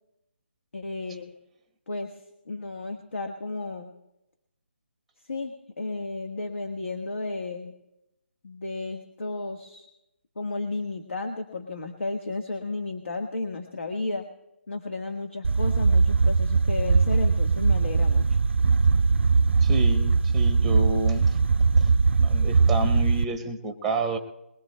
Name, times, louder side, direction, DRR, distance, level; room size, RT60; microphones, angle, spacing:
voice 1, 0.7-1.3 1.9-2.1 2.5-3.9 5.2-7.7 8.4-9.9 10.3-14.2 14.7-18.4, left 3 dB, 70° left, 5 dB, 1.4 m, -33 dB
sound 1, 15.4-23.2, right 4 dB, 60° right, 0.4 m, -21 dB
voice 2, 19.6-21.4 22.2-24.2, right 2 dB, ahead, 7 dB, 0.8 m, -30 dB
22.5 x 20.5 x 2.2 m, 0.92 s
figure-of-eight pair, 155°, 7 cm